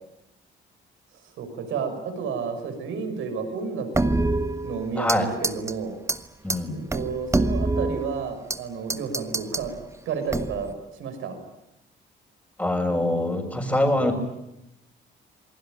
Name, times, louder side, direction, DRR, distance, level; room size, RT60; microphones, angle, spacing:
voice 1, 1.4-5.9 6.7-9.7 10.1-10.7 11.0-11.4, right 5 dB, 85° right, 6 dB, 6.1 m, -31 dB
sound 1, 3.9-5.2 5.4-5.7 6.1-6.2 6.5-6.6 6.9-8.6 8.9-9.7 10.3-10.7, right 2 dB, 15° right, 1.4 m, -25 dB
voice 2, 6.4-6.8 12.6-14.2, left 1 dB, 10° left, -4 dB, 6.0 m, -24 dB
27.5 x 19.5 x 9.2 m, 0.84 s
cardioid pair, 90°, 20 cm